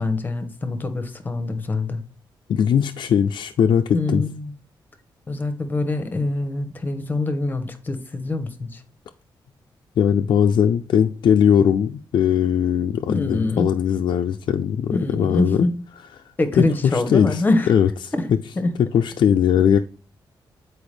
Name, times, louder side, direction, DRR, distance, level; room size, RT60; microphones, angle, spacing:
voice 1, 0.0-2.0 3.9-4.5 5.3-8.8 13.1-13.7 14.9-15.8 16.4-17.7 18.1-18.3 18.6-18.8, left 2 dB, 20° left, 0.8 m, -24 dB
voice 2, 2.5-4.2 10.0-15.7 16.6-17.4 17.7-18.4 18.8-19.8, left 8 dB, 65° left, 0.4 m, -19 dB
8.8 x 4.5 x 3.2 m
wide cardioid pair, 170°, 8 cm